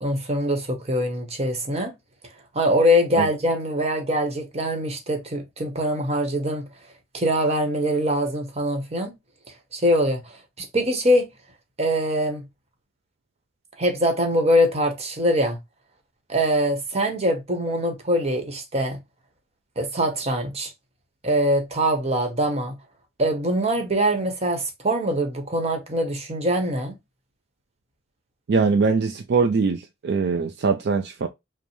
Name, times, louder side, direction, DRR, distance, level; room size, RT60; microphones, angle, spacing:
voice 1, 0.0-1.9 2.5-6.7 7.1-9.1 9.7-10.2 10.6-11.3 11.8-12.4 13.8-15.6 16.3-19.0 19.8-20.7 21.2-22.8 23.2-26.9, equal, 35° right, 1.0 m, -23 dB
voice 2, 28.5-31.3, right 4 dB, 60° right, 0.4 m, -22 dB
5.3 x 2.1 x 3.1 m
head